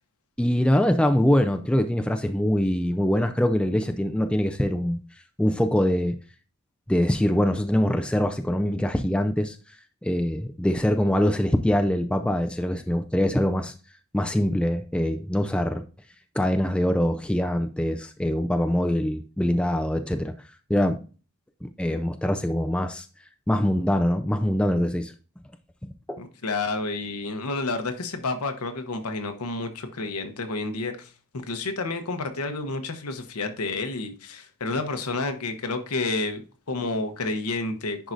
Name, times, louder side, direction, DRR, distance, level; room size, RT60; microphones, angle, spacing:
voice 1, 0.4-5.0 5.4-6.1 6.9-9.6 10.0-13.7 14.1-15.8 16.4-20.3 20.7-21.0 21.6-23.0 23.5-25.1 26.1-26.2, left 1 dB, 5° left, 0.3 m, -23 dB
voice 2, 26.2-31.1 31.4-38.1, left 3 dB, 85° left, 1.0 m, -30 dB
10.0 x 4.7 x 2.6 m
head